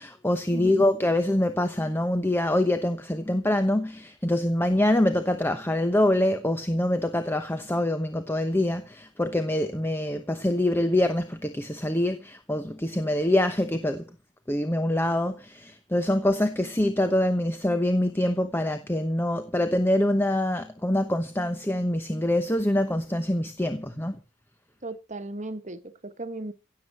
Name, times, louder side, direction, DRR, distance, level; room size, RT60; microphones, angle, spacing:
voice 1, 0.0-14.0 14.5-24.2, left 1 dB, 10° left, 0.9 m, -25 dB
voice 2, 0.5-0.8 24.8-26.5, right 2 dB, 35° right, 1.5 m, -36 dB
16.5 x 7.9 x 7.7 m
head